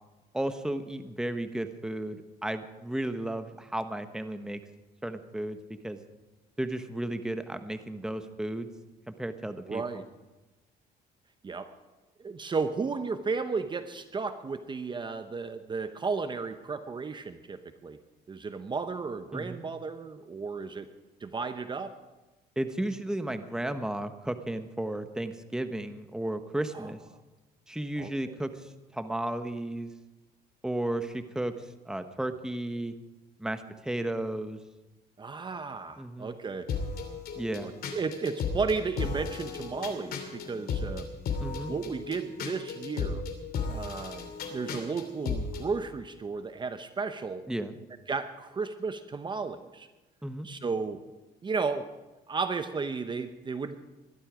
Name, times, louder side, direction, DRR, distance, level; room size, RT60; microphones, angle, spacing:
voice 1, 0.3-4.6 5.0-5.6 5.8-6.0 6.6-8.7 9.1-10.0 19.3-19.6 22.6-27.0 27.7-29.9 30.6-32.9 33.4-34.6 36.0-36.3 37.4-37.7 41.4-41.7 47.5-47.7 50.2-50.5, right 1 dB, 5° right, 9 dB, 1.1 m, -34 dB
voice 2, 9.7-10.0 11.4-11.7 12.2-18.0 18.3-20.9 21.2-21.9 26.7-26.9 28.0-28.4 35.2-36.7 37.6-41.1 41.7-43.2 43.7-47.4 48.1-49.9 50.4-51.0 51.4-51.9 52.3-53.8, right 4 dB, 25° right, 9 dB, 0.9 m, -34 dB
sound 1, 36.7-45.7, left 5 dB, 65° left, 2.9 m, -35 dB
20.5 x 12.5 x 5.0 m, 1.1 s
cardioid pair, 110°, 17 cm